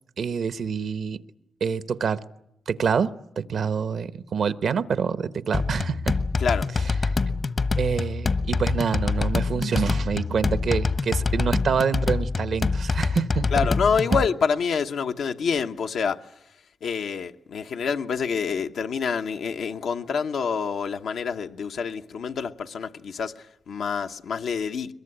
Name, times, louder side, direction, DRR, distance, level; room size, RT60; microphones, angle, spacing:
voice 1, 0.2-1.2 1.6-2.2 2.7-6.2 7.8-13.5 14.1-14.2, right 6 dB, 70° right, 1.0 m, -26 dB
sound 1, 5.5-14.3, left 4 dB, 50° left, 1.1 m, -25 dB
voice 2, 13.5-16.3 16.8-24.9, left 6 dB, 80° left, 1.0 m, -27 dB
22.5 x 22.0 x 9.9 m
cardioid pair, 65°, 0 cm